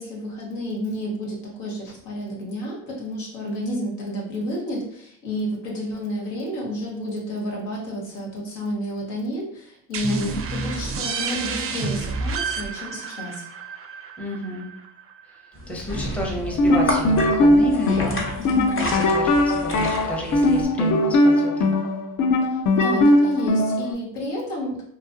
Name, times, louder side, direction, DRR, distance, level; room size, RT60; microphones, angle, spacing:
voice 1, 0.0-13.4 18.4-18.9 22.4-24.8, equal, 80° left, -3 dB, 1.1 m, -30 dB
sound 1, 9.9-15.4, right 5 dB, 35° right, 0.4 m, -30 dB
voice 2, 10.1-10.4 14.2-14.7 15.7-18.2 18.5-21.8, equal, 5° left, -1 dB, 0.7 m, -31 dB
sound 2, 15.5-20.6, left 1 dB, 30° left, 0.8 m, -31 dB
sound 3, 16.5-23.9, left 1 dB, 50° left, 0.4 m, -20 dB
2.8 x 2.3 x 2.5 m, 0.68 s
supercardioid pair, 75°, 41 cm